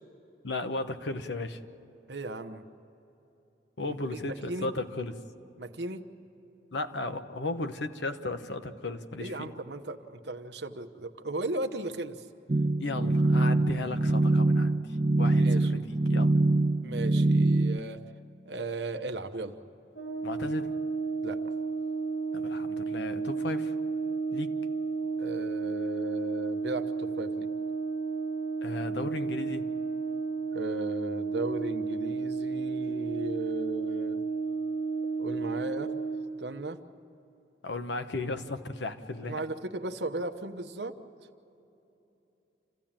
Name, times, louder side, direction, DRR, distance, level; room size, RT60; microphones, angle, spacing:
voice 1, 0.4-1.6 3.8-5.1 6.7-9.5 12.8-16.3 20.2-20.7 22.3-23.7 24.3-24.6 28.6-29.7 37.6-39.4, left 2 dB, 80° left, 8 dB, 1.1 m, -35 dB
voice 2, 2.1-2.6 3.9-4.7 5.6-6.0 9.2-12.3 15.3-15.9 16.8-18.0 18.4-19.6 21.2-21.4 25.2-27.5 30.5-34.2 35.2-35.9 36.4-36.8 39.3-40.9, right 2 dB, 75° right, 7 dB, 1.1 m, -36 dB
sound 1, 12.5-17.8, right 2 dB, 30° right, 0.4 m, -24 dB
Brass instrument, 19.9-36.3, right 4 dB, 55° left, 3.0 m, -32 dB
28.0 x 15.0 x 8.9 m, 2.9 s
head